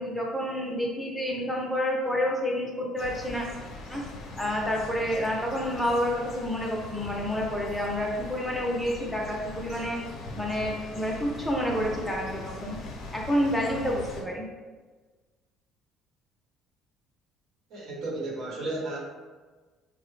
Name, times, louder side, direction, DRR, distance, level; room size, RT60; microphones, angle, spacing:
voice 1, 0.0-3.5 3.9-4.0 4.4-10.0 10.4-12.8 13.1-14.5, equal, ahead, -2 dB, 0.6 m, -29 dB
sound 1, 3.0-14.2, left 2 dB, 50° left, 0.6 m, -41 dB
voice 2, 17.7-19.0, right 2 dB, 60° right, -2 dB, 0.9 m, -33 dB
4.4 x 2.0 x 3.1 m, 1.4 s
cardioid pair, 155°, 0 cm